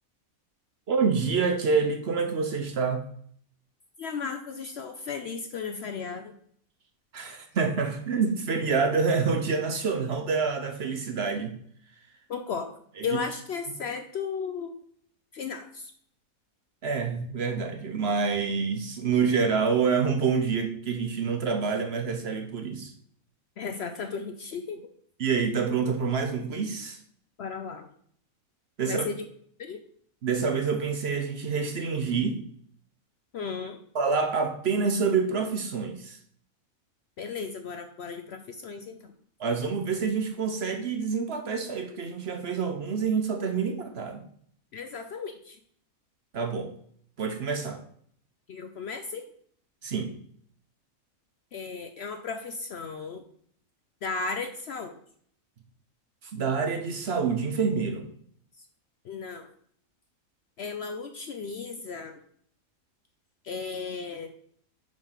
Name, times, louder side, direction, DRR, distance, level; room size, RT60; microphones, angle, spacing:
voice 1, 0.9-3.0 7.1-11.6 13.0-13.2 16.8-22.9 25.2-27.0 28.8-29.0 30.2-32.4 33.9-36.2 39.4-44.3 46.3-46.7 47.2-47.8 49.8-50.1 56.2-58.0, right 5 dB, 55° right, 5 dB, 0.8 m, -27 dB
voice 2, 4.0-6.3 12.3-12.7 13.0-14.7 15.3-15.9 23.6-24.8 27.4-27.9 28.9-29.2 29.6-29.8 33.3-33.8 37.2-39.1 44.7-45.6 48.5-49.2 51.5-53.2 54.0-55.0 59.0-59.5 60.6-62.2 63.4-64.3, left 5 dB, 60° left, 7 dB, 0.7 m, -35 dB
5.1 x 5.1 x 5.6 m, 0.62 s
omnidirectional pair, 1.5 m